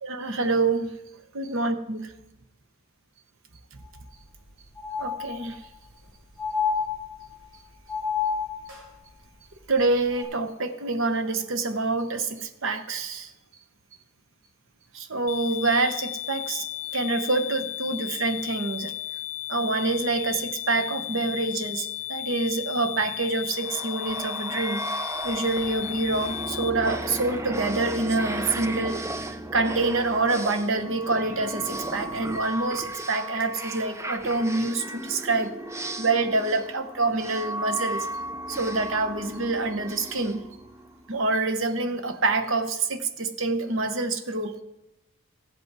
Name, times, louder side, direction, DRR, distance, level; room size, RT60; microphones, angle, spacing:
voice 1, 0.0-1.0 1.3-2.1 5.0-5.6 9.7-13.3 14.9-16.7 16.9-18.9 19.5-24.8 25.2-35.5 36.0-38.1 38.5-40.4 41.1-44.6, right 3 dB, 60° right, 9 dB, 0.9 m, -26 dB
sound 1, 3.8-3.9 4.2-4.3 4.7-5.7 6.4-7.4 7.9-8.8 10.1-10.2, left 6 dB, 75° right, 4.5 m, -29 dB
sound 2, 15.3-26.7, left 15 dB, 75° left, 0.4 m, -35 dB
sound 3, 23.5-41.2, right 1 dB, 15° right, 0.4 m, -35 dB
15.0 x 8.0 x 4.7 m, 0.92 s
head